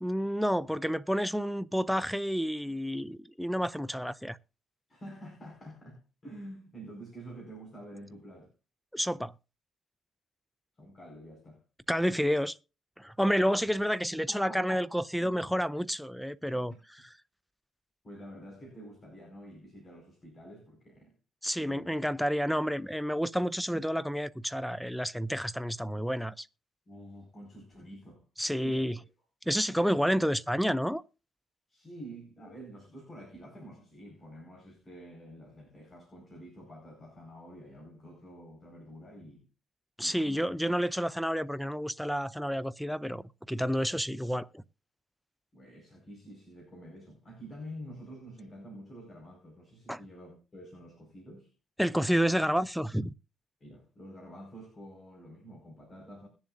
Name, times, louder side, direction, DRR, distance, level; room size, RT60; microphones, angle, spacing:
voice 1, 0.0-4.4 8.9-9.3 11.9-12.6 13.0-16.7 21.4-26.5 28.4-29.0 29.5-31.0 40.0-44.6 49.9-50.0 51.8-53.1, equal, ahead, 0.5 m, -30 dB
voice 2, 4.9-8.5 10.8-11.6 14.2-15.6 18.0-21.2 21.6-22.0 23.7-24.0 26.9-28.2 28.6-29.1 31.7-39.5 40.0-40.5 45.5-51.5 53.6-56.3, equal, 35° left, 4.9 m, -48 dB
21.0 x 7.3 x 2.5 m
cardioid pair, 90°, 0 cm